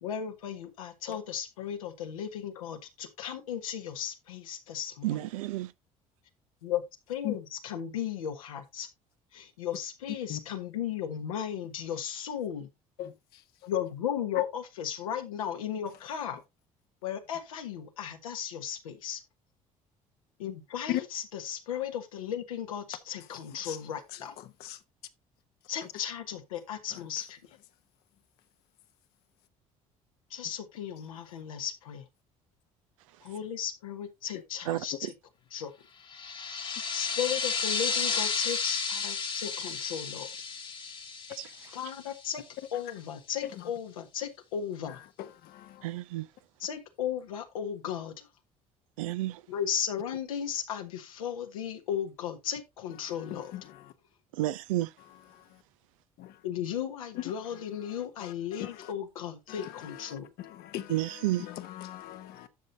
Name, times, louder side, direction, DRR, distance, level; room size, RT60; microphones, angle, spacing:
voice 1, 0.0-5.2 6.6-6.8 7.1-8.9 9.3-12.7 13.7-16.4 17.0-19.2 20.4-24.3 25.7-27.4 30.3-32.0 33.2-35.1 35.5-35.7 36.9-40.3 41.7-42.4 42.7-45.0 46.6-48.3 49.5-53.5 56.4-60.3, left 9 dB, 80° left, 1.5 m, -35 dB
voice 2, 5.0-5.7 34.7-35.1 41.4-41.5 45.8-46.3 49.0-49.4 54.3-54.9 60.9-61.5, right 15 dB, 75° right, 0.6 m, -31 dB
sound 1, 36.1-42.4, left 5 dB, 30° left, 1.3 m, -33 dB
voice 3, 60.4-60.9 61.8-62.5, left 14 dB, 60° left, 1.1 m, -35 dB
12.0 x 6.5 x 2.8 m
hypercardioid pair, 55°, 18 cm